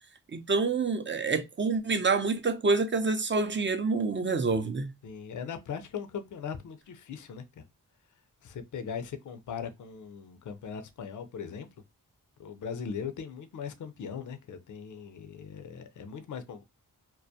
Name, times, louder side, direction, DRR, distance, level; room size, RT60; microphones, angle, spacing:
voice 1, 0.3-4.9, right 4 dB, 30° right, 0.5 m, -27 dB
voice 2, 5.0-7.6 8.4-11.7 12.4-16.6, left 6 dB, 50° left, 0.5 m, -39 dB
2.2 x 2.1 x 2.6 m
supercardioid pair, 40°, 39 cm